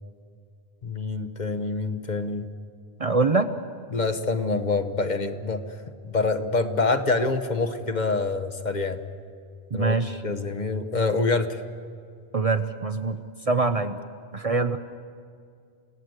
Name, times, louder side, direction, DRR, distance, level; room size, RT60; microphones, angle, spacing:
voice 1, 0.8-2.5 3.9-5.6 6.0-9.0 9.7-9.9 10.2-11.6, left 3 dB, 45° left, 8 dB, 1.2 m, -26 dB
voice 2, 3.0-3.5 9.7-10.2 12.3-13.2 13.5-14.0 14.3-14.8, right 3 dB, 40° right, 9 dB, 0.7 m, -24 dB
28.5 x 17.5 x 8.0 m, 2.3 s
omnidirectional pair, 1.1 m